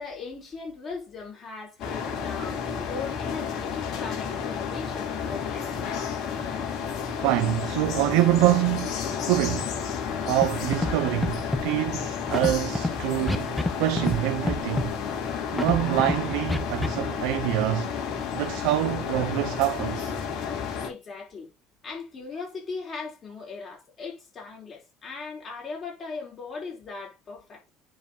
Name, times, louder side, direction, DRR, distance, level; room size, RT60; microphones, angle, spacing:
voice 1, 0.0-5.9 20.8-21.5 21.8-27.7, left 4 dB, 30° left, 4.3 m, -38 dB
sound 1, 1.8-20.9, left 7 dB, 55° left, 4.7 m, -31 dB
voice 2, 7.2-9.7 10.3-15.0 15.5-17.9 18.3-20.1, right 15 dB, 80° right, 0.8 m, -26 dB
Scratching (performance technique), 10.4-10.5 10.7-10.9 11.2-11.6 12.3-12.9 13.3-13.7 14.0-14.2 14.5-14.9 15.6-16.1 16.5-16.9, left 2 dB, 10° left, 1.1 m, -26 dB
9.7 x 4.9 x 3.9 m
cardioid pair, 135°, 0 cm